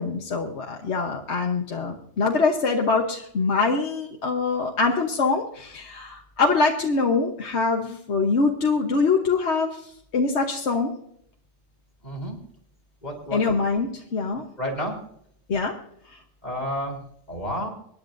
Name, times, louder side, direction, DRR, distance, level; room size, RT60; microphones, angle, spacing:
voice 1, 0.0-10.9 13.3-14.4 15.5-15.8, left 4 dB, 70° left, 1 dB, 1.4 m, -24 dB
voice 2, 12.0-12.4 13.0-13.5 14.6-15.0 16.4-17.0 17.3-17.7, equal, 40° left, 0 dB, 3.9 m, -30 dB
25.5 x 10.5 x 2.6 m, 0.68 s
omnidirectional pair, 1.2 m